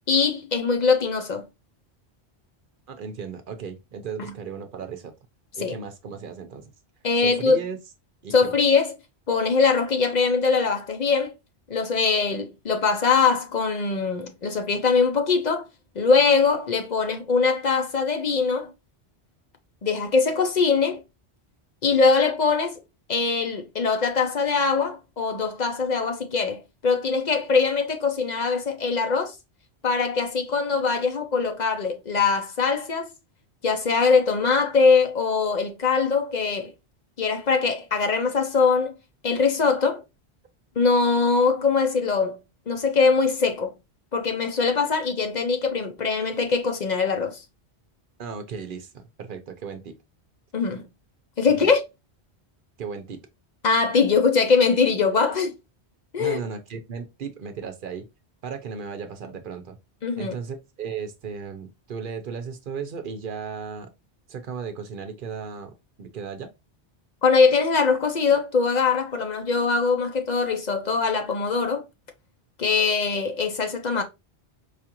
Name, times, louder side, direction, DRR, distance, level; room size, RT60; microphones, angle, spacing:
voice 1, 0.1-1.5 4.2-4.3 5.6-5.7 7.0-7.6 8.3-8.9 9.3-11.3 11.7-15.7 16.0-18.7 19.8-21.0 21.8-22.8 23.1-29.3 29.8-33.1 33.6-36.7 37.2-38.9 39.2-40.0 40.8-42.4 42.7-43.7 44.1-47.4 50.5-50.8 51.4-51.8 53.6-55.5 56.1-56.4 60.0-60.4 67.2-71.8 72.6-74.0, left 4 dB, 50° left, 0.6 m, -22 dB
voice 2, 2.9-5.1 5.6-6.7 7.2-7.8 8.2-8.5 48.2-49.9 51.6-51.7 52.8-53.2 56.2-58.1 58.4-59.8 60.2-63.9 64.3-65.7 66.0-66.5, right 6 dB, 55° right, 0.7 m, -35 dB
4.8 x 2.4 x 2.8 m
omnidirectional pair, 1.1 m